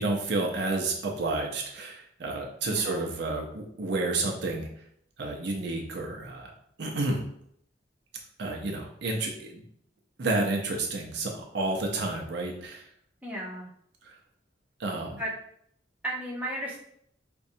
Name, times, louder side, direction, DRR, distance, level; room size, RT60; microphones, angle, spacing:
voice 1, 0.0-4.7 5.2-6.5 6.8-7.2 8.4-9.6 10.2-12.8 14.0-14.1 14.8-15.2, right 2 dB, 60° right, 0 dB, 0.6 m, -30 dB
voice 2, 2.6-3.2 13.2-13.7 15.2-15.3 16.0-16.8, right 1 dB, 10° right, -4 dB, 0.8 m, -35 dB
5.1 x 2.3 x 2.7 m, 0.70 s
head